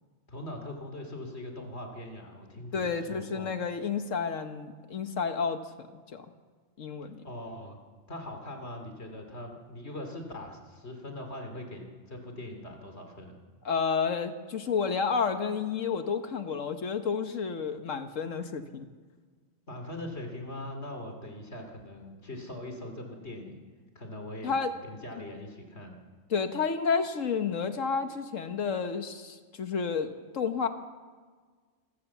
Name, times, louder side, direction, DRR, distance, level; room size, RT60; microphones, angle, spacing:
voice 1, 0.3-3.5 7.0-7.8 8.1-13.4 19.7-23.6 23.9-24.5 24.8-26.0, left 1 dB, 50° left, 4 dB, 2.9 m, -41 dB
voice 2, 2.7-6.3 6.8-7.2 13.6-18.9 24.4-24.7 26.3-30.7, left 5 dB, 70° left, 8 dB, 1.5 m, -31 dB
26.5 x 14.5 x 7.2 m, 1.5 s
omnidirectional pair, 1.4 m